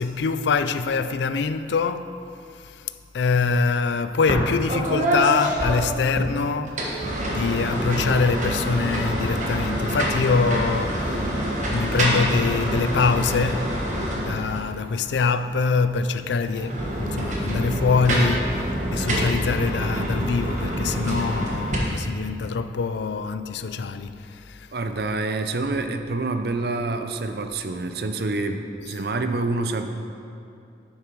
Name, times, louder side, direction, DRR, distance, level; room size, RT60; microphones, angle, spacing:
voice 1, 0.0-2.2 2.5-11.3 11.7-13.8 14.2-24.7, left 4 dB, 80° left, 0.4 m, -24 dB
sound 1, 4.3-4.4 4.7-6.3 6.7-14.7 16.5-21.8, equal, 45° right, 1.5 m, -26 dB
voice 2, 24.7-29.9, right 2 dB, 60° right, 0.6 m, -27 dB
9.9 x 6.7 x 4.6 m
head